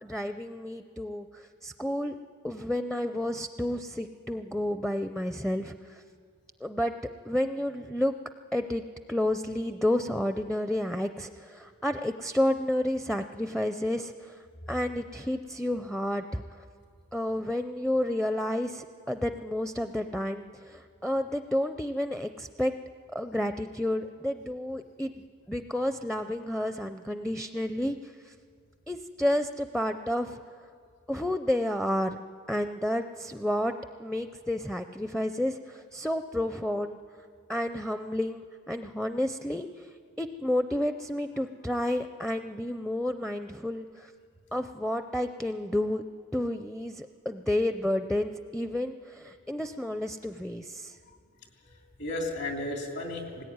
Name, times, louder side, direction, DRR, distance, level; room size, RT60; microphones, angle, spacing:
voice 1, 0.0-2.2 2.4-5.7 6.6-6.9 7.2-8.1 8.5-8.8 9.1-14.3 14.7-16.4 17.1-22.7 23.1-28.0 28.9-30.4 31.1-32.2 32.5-33.7 34.0-37.0 37.5-39.7 40.2-44.1 44.5-46.0 46.3-50.9, left 1 dB, ahead, 9 dB, 0.5 m, -30 dB
voice 2, 51.6-53.4, left 2 dB, 60° left, 1 dB, 3.2 m, -35 dB
19.0 x 18.5 x 9.5 m, 2.2 s
head